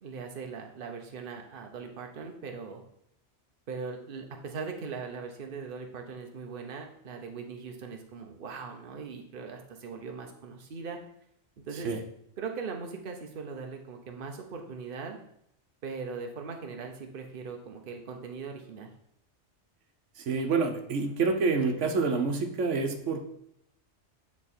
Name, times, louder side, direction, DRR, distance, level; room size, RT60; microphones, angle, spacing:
voice 1, 0.0-2.8 3.7-11.0 11.7-11.9 12.4-15.2 15.8-18.9, right 5 dB, 50° right, 3 dB, 1.0 m, -40 dB
voice 2, 20.2-23.2, right 4 dB, 90° right, 5 dB, 1.2 m, -27 dB
8.9 x 3.6 x 4.3 m, 0.74 s
omnidirectional pair, 1.2 m